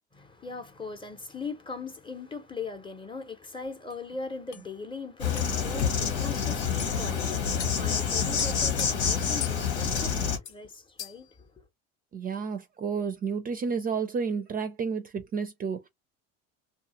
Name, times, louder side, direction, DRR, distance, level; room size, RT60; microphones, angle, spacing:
voice 1, 0.1-11.5, left 4 dB, 15° left, 0.7 m, -40 dB
sound 1, 3.9-4.0 4.5-4.7 5.4-5.5 5.8-5.9 6.8-7.0 7.6-7.8 8.4-8.9 9.4-9.6 9.9-10.1 10.5-10.6 11.0-11.3, left 10 dB, 55° left, 0.7 m, -39 dB
Insect, 5.2-10.4, left 6 dB, 90° left, 1.3 m, -27 dB
voice 2, 12.1-15.9, right 5 dB, 30° right, 0.4 m, -31 dB
2.8 x 2.3 x 2.8 m
supercardioid pair, 95°, 31 cm